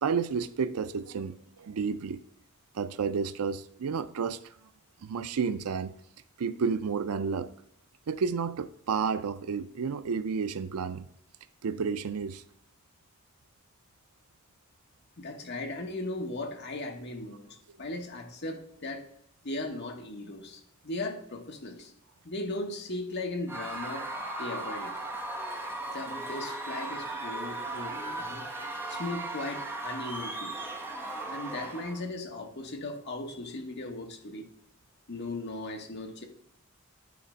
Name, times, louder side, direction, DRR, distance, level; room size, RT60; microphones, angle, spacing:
voice 1, 0.0-2.2 2.7-4.4 5.0-5.9 6.4-7.5 8.1-11.1 11.6-12.4, right 5 dB, 85° right, 0.4 m, -31 dB
voice 2, 15.2-19.1 19.4-21.9 22.2-24.1 24.4-25.0 25.9-28.5 28.9-30.6 31.3-34.5 35.1-36.2, left 2 dB, 50° left, 1.1 m, -37 dB
Screaming / Cheering / Crowd, 23.5-32.0, right 2 dB, 10° right, 0.8 m, -37 dB
9.4 x 3.3 x 4.9 m
head